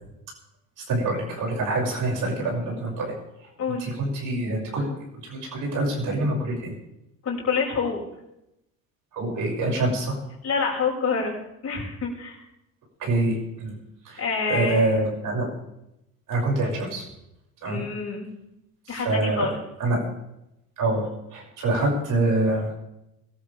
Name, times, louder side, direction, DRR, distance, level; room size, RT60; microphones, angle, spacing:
voice 1, 0.9-3.1 3.8-4.9 5.2-6.7 9.1-10.2 13.0-13.7 14.0-14.2 14.5-15.5 16.3-17.0 17.6-17.8 18.9-19.5 19.8-20.0 20.8-22.7, right 2 dB, 50° right, -1 dB, 6.6 m, -25 dB
voice 2, 7.2-8.0 10.4-11.3 11.6-12.4 14.2-15.1 17.6-18.3 18.9-19.6, left 5 dB, 35° left, -3 dB, 6.5 m, -27 dB
22.0 x 13.5 x 3.5 m, 0.85 s
hypercardioid pair, 75°, 41 cm